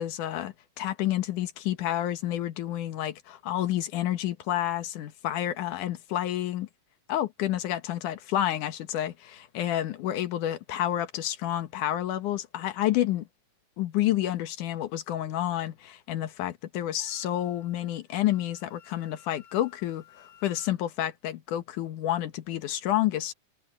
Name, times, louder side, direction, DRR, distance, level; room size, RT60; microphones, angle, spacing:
voice 1, 0.0-6.7 7.1-13.3 13.8-23.3, left 13 dB, 85° left, 2.7 m, -29 dB
Wind instrument woodwind instrument, 17.0-20.7, left 9 dB, 50° left, 3.3 m, -57 dB
omnidirectional pair, 3.5 m